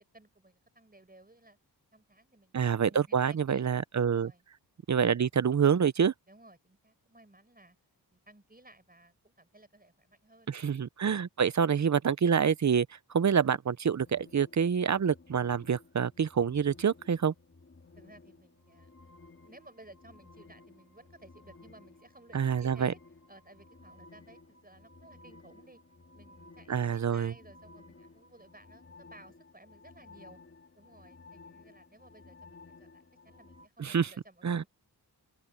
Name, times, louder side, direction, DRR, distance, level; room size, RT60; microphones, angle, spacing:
voice 1, 0.0-1.6 1.9-3.7 4.0-4.4 6.3-7.8 8.1-10.6 18.0-18.9 19.4-23.0 23.3-25.8 26.1-30.4 30.8-34.7, right 2 dB, 20° right, 6.8 m, -57 dB
voice 2, 2.5-4.3 4.9-6.1 10.5-17.3 22.3-22.9 26.7-27.3 33.8-34.1 34.4-34.6, right 7 dB, 45° right, 0.6 m, -27 dB
sound 1, 14.0-33.7, left 3 dB, 35° left, 2.5 m, -56 dB
open air
wide cardioid pair, 85°, 41 cm